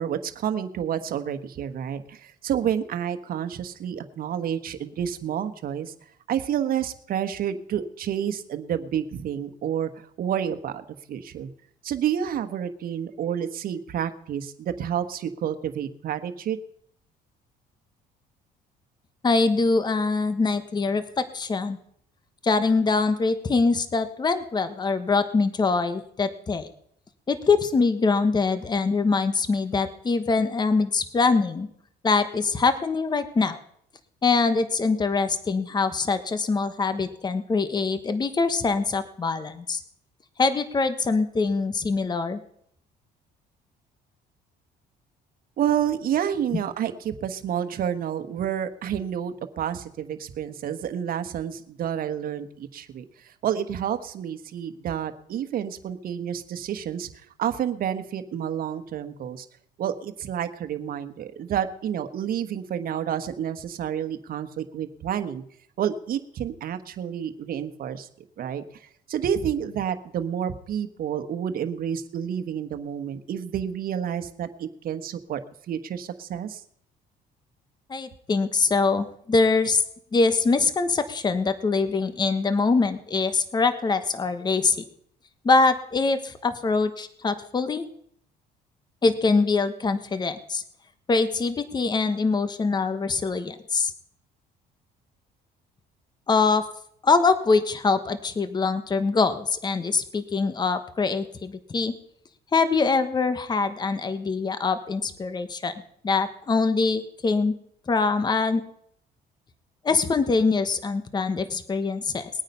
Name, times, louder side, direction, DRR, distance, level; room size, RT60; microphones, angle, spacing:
voice 1, 0.0-5.9 6.3-9.9 10.2-11.5 11.8-16.6 45.6-57.1 57.4-59.5 59.8-65.4 65.8-68.1 68.4-68.6 69.1-75.4 75.7-76.6, right 9 dB, 60° right, 9 dB, 1.4 m, -29 dB
voice 2, 19.2-21.8 22.4-26.7 27.3-31.7 32.0-33.6 34.2-39.8 40.4-42.4 77.9-79.8 80.1-84.8 85.4-87.9 89.0-90.6 91.1-93.9 96.3-96.6 97.0-101.9 102.5-105.7 106.0-107.5 107.9-108.6 109.8-112.3, left 4 dB, 25° left, 11 dB, 1.2 m, -23 dB
20.0 x 9.0 x 5.5 m, 0.68 s
cardioid pair, 110°, 17 cm